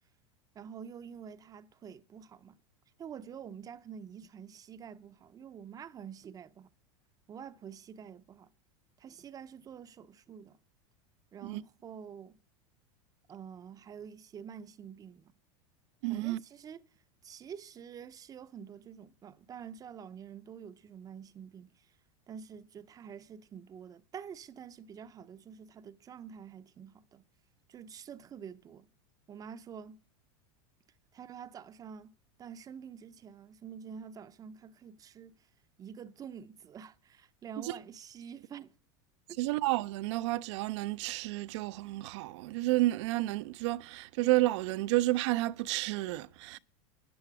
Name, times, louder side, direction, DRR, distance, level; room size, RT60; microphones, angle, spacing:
voice 1, 0.5-2.6 3.0-6.7 7.3-8.5 9.0-10.6 11.3-12.4 13.3-15.3 16.1-16.8 17.2-21.9 22.3-27.2 27.7-28.9 29.3-30.0 31.1-35.5 35.8-38.7 39.3-39.4, right 7 dB, 25° right, 0.6 m, -47 dB
voice 2, 16.0-16.4 37.6-37.7 39.4-46.6, right 18 dB, 65° right, 0.5 m, -31 dB
10.5 x 9.9 x 6.0 m
supercardioid pair, 135°, 16 cm